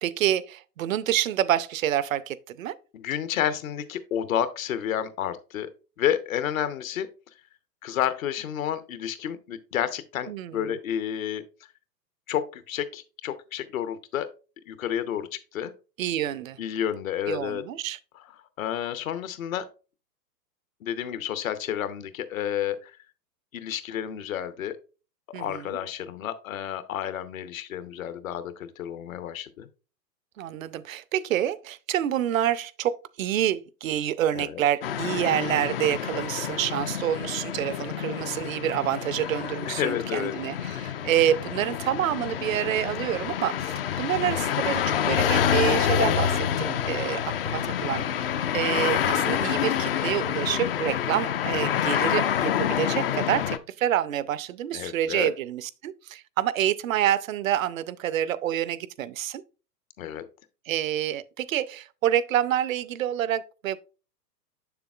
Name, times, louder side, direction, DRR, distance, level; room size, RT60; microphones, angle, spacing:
voice 1, 0.0-2.8 10.3-10.7 16.0-16.6 17.3-18.0 25.3-25.8 30.4-48.3 48.5-59.4 60.7-63.8, right 11 dB, 55° right, 0.5 m, -27 dB
voice 2, 2.9-5.7 6.0-7.1 7.8-11.4 12.3-14.3 14.7-15.7 16.6-17.6 18.6-19.6 20.8-22.9 23.5-24.8 25.3-29.7 34.3-34.6 39.6-40.4 40.7-41.0 54.7-55.3 60.0-60.2, left 10 dB, 55° left, 0.8 m, -30 dB
sound 1, 34.8-53.6, left 9 dB, 40° left, 0.4 m, -27 dB
6.9 x 6.9 x 2.3 m
figure-of-eight pair, 110°, 50 cm